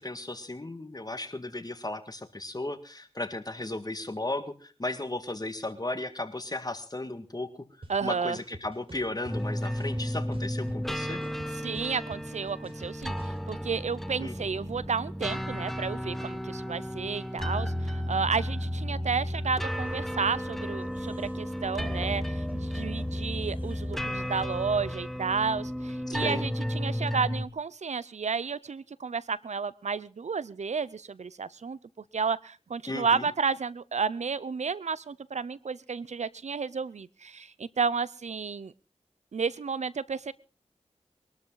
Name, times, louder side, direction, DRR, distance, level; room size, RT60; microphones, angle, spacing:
voice 1, 0.0-7.6 8.0-11.2 14.2-14.5 26.1-26.4 32.9-33.3, left 2 dB, 35° left, 9 dB, 1.9 m, -35 dB
sound 1, 7.8-7.9 8.4-9.3 9.8-10.9 11.2-13.4, right 2 dB, 50° right, 4.5 m, -46 dB
voice 2, 7.9-8.4 11.6-31.8 32.1-38.7 39.3-40.3, right 5 dB, 75° right, 19 dB, 0.7 m, -32 dB
sound 2, 9.3-27.5, equal, ahead, 1.2 m, -33 dB
sound 3, 19.5-24.8, right 1 dB, 15° right, 4.2 m, -51 dB
22.5 x 12.5 x 4.0 m, 0.34 s
cardioid pair, 45°, 12 cm